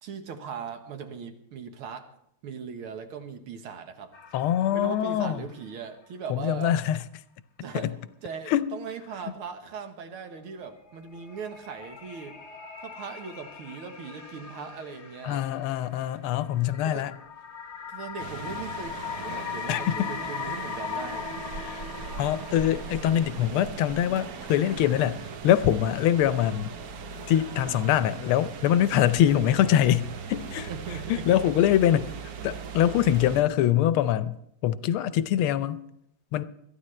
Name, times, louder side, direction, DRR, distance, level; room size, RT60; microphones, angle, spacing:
voice 1, 0.0-2.1 2.4-4.1 4.7-6.7 7.6-7.9 8.2-12.4 12.8-15.4 16.8-17.1 17.9-21.3 30.5-31.3, right 6 dB, 85° right, 7 dB, 2.1 m, -39 dB
sound 1, 4.1-5.7 6.0-6.1 10.5-23.4, left 7 dB, 45° left, 0.9 m, -40 dB
voice 2, 4.3-5.4 6.3-7.0 7.8-7.9 8.5-8.7 15.2-17.1 19.7-20.1 21.6-21.8 22.2-25.2 25.4-26.7 27.3-30.7 31.1-32.1 32.4-34.4 34.6-35.8 36.3-36.4, left 11 dB, 85° left, 14 dB, 1.5 m, -24 dB
sound 2, 18.2-33.4, right 6 dB, 60° right, 1.0 m, -39 dB
21.0 x 13.0 x 3.2 m, 0.76 s
omnidirectional pair, 2.3 m